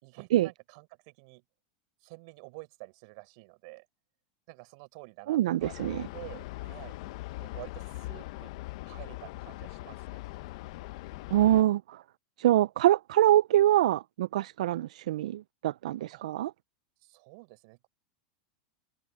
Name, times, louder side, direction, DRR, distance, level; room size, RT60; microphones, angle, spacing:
voice 1, 0.0-1.4 2.0-3.9 4.5-5.7 6.1-6.9 7.4-8.5 8.8-10.2 16.1-16.2 17.0-17.9, right 30 dB, 60° right, 4.8 m, -49 dB
voice 2, 5.3-6.1 11.3-12.0 12.4-16.5, right 13 dB, 85° right, 0.3 m, -25 dB
sound 1, 5.6-11.6, left 19 dB, 65° left, 0.7 m, -41 dB
open air
supercardioid pair, 140°, 4 cm